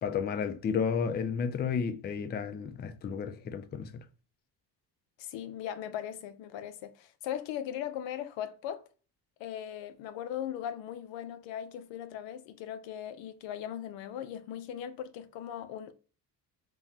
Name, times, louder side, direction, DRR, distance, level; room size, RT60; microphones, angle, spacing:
voice 1, 0.0-3.9, left 6 dB, 25° left, 0.3 m, -32 dB
voice 2, 5.2-8.8 9.4-15.9, left 10 dB, 80° left, 0.6 m, -39 dB
3.5 x 2.2 x 2.8 m
supercardioid pair, 80°, 44 cm